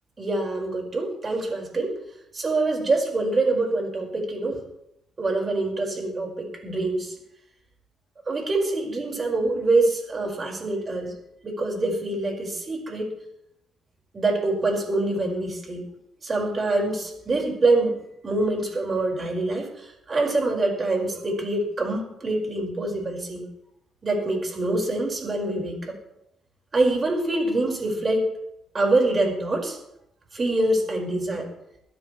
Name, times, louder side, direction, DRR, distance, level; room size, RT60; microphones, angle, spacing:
voice 1, 0.2-1.9 2.3-4.6 5.2-7.1 8.3-11.1 11.4-13.1 14.1-15.8 16.2-17.9 18.2-23.5 24.0-25.9 26.7-28.3 28.7-29.8 30.3-31.5, right 2 dB, 35° right, 0 dB, 5.5 m, -25 dB
22.0 x 13.0 x 3.3 m, 0.80 s
cardioid pair, 90°, 0 cm